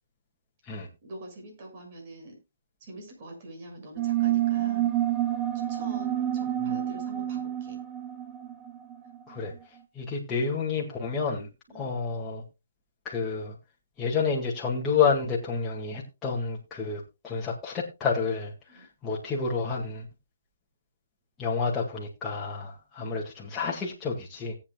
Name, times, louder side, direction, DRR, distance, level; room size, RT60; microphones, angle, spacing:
voice 1, 1.0-2.4 2.8-4.9 5.5-7.8 11.7-11.9 18.7-18.9 23.0-23.2, right 1 dB, 40° right, 2 dB, 6.4 m, -45 dB
sound 1, 4.0-9.2, right 12 dB, 15° right, 1.0 m, -28 dB
voice 2, 9.9-11.5 11.7-12.4 13.0-13.6 14.0-20.1 21.4-24.6, left 5 dB, 15° left, -4 dB, 2.0 m, -29 dB
18.0 x 8.7 x 2.3 m, 0.25 s
hypercardioid pair, 150°, 0 cm